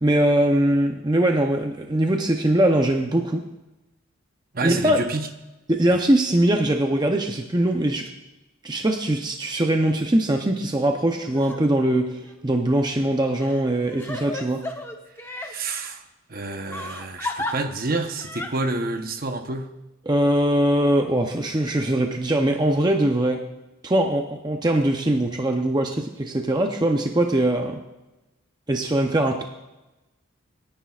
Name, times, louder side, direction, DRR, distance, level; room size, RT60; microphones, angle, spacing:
voice 1, 0.0-3.4 4.6-5.0 5.7-8.1 8.6-14.6 20.1-23.4 23.8-27.8 28.7-29.4, right 1 dB, 20° right, 3 dB, 0.7 m, -21 dB
voice 2, 4.5-5.3 5.9-6.0 15.2-16.0 16.3-19.7, right 2 dB, 45° right, 6 dB, 0.9 m, -29 dB
Crying sobbing, 11.3-11.6 12.2-12.3 13.4-15.5 16.7-17.5 18.2-18.5, left 2 dB, 10° left, 0.9 m, -33 dB
27.5 x 10.0 x 2.4 m, 1.0 s
head